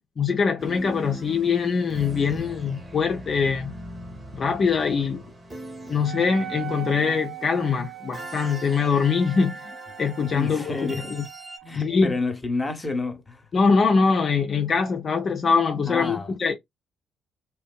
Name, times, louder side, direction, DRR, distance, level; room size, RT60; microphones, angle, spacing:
voice 1, 0.2-3.7 4.3-5.2 5.9-9.7 10.0-11.2 11.7-12.2 13.5-16.5, left 5 dB, 50° left, 0.5 m, -23 dB
sound 1, 0.6-11.6, equal, 25° right, 1.1 m, -40 dB
Wind instrument woodwind instrument, 6.0-11.7, right 16 dB, 60° right, 0.5 m, -40 dB
voice 2, 10.2-11.0 11.6-13.5 15.8-16.3, left 3 dB, 20° left, 0.8 m, -30 dB
2.6 x 2.2 x 2.2 m
supercardioid pair, 55°, 0 cm